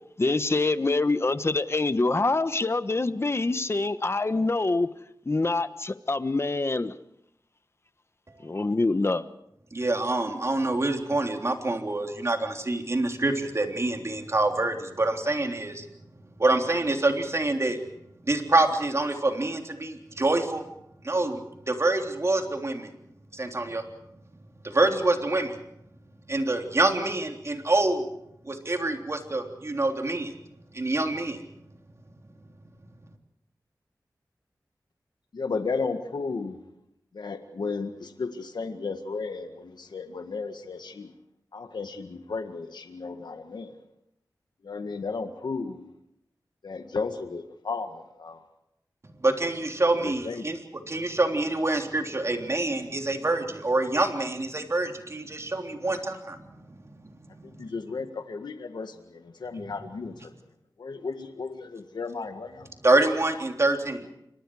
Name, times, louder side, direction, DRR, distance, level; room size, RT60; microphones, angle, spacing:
voice 1, 0.2-4.9 5.3-6.9 8.4-9.2, left 3 dB, 35° left, 12 dB, 1.2 m, -25 dB
voice 2, 9.7-15.9 16.4-17.8 18.3-20.6 21.0-22.9 23.3-23.8 24.6-25.6 26.3-28.0 28.5-30.3 30.7-31.4 49.0-50.6 50.9-56.6 57.2-57.3 57.6-57.7 62.8-64.1, right 2 dB, 40° right, 3 dB, 3.5 m, -26 dB
voice 3, 35.3-36.6 37.1-41.1 41.5-43.7 44.6-45.9 46.6-48.4 50.0-50.5 57.4-60.3 60.8-62.7, left 4 dB, 90° left, 7 dB, 1.8 m, -34 dB
29.0 x 25.5 x 4.9 m, 0.80 s
wide cardioid pair, 85°, 7 cm